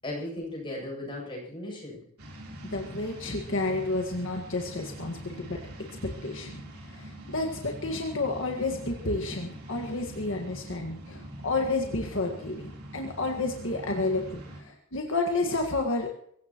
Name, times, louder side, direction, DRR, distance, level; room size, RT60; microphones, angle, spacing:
voice 1, 0.0-2.0, left 1 dB, 25° left, -2 dB, 7.9 m, -36 dB
sound 1, 2.2-14.6, right 1 dB, 85° right, 3.7 m, -44 dB
voice 2, 2.6-5.6 6.0-6.6 6.9-16.1, left 2 dB, 60° left, 2 dB, 1.7 m, -30 dB
23.5 x 16.5 x 3.1 m, 0.68 s
head